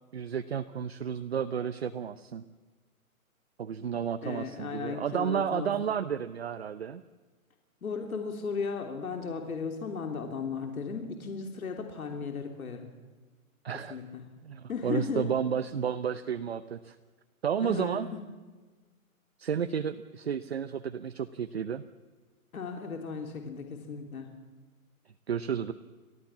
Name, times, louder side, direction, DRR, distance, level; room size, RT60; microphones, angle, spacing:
voice 1, 0.1-2.4 3.6-7.0 13.6-14.0 14.4-17.0 17.4-18.1 19.4-21.8 25.3-25.7, right 8 dB, 45° right, 11 dB, 0.7 m, -32 dB
voice 2, 4.2-5.7 7.8-12.9 13.9-14.2 14.7-15.3 17.6-18.2 22.5-24.3, left 5 dB, 75° left, 4 dB, 3.3 m, -36 dB
30.0 x 13.5 x 7.4 m, 1.3 s
hypercardioid pair, 180°, 43 cm